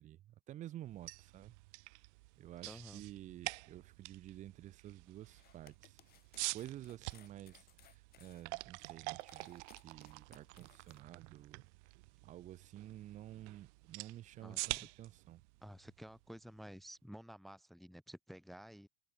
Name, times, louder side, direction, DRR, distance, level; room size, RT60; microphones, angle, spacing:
voice 1, 0.0-1.5 2.4-6.0 6.5-11.7 12.2-15.4, right 13 dB, 20° right, 0.5 m, -51 dB
sound 1, 0.9-16.8, right 26 dB, 65° right, 0.6 m, -47 dB
voice 2, 2.7-3.0 14.4-14.9 15.6-18.9, equal, ahead, 1.4 m, -52 dB
sound 2, 5.2-11.0, left 12 dB, 25° left, 1.0 m, -65 dB
supercardioid pair, 165°, 38 cm